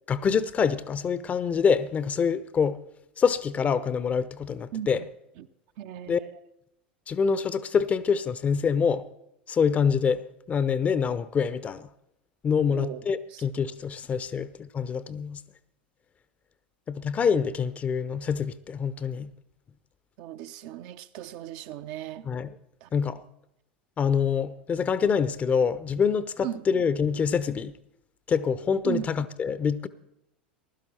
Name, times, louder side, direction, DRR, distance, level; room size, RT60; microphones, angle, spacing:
voice 1, 0.1-2.8 3.2-5.0 6.1-6.2 7.1-9.0 9.5-11.9 12.4-15.4 16.9-19.3 22.2-22.5 22.9-23.2 24.0-27.7 28.3-29.9, left 6 dB, 25° left, 0.7 m, -26 dB
voice 2, 5.8-6.3 12.7-13.0 13.3-13.4 14.4-14.5 20.2-22.3 22.8-22.9 26.4-26.7 28.8-29.2, right 11 dB, 55° right, 0.7 m, -37 dB
15.5 x 12.0 x 4.4 m
figure-of-eight pair, 80°, 5 cm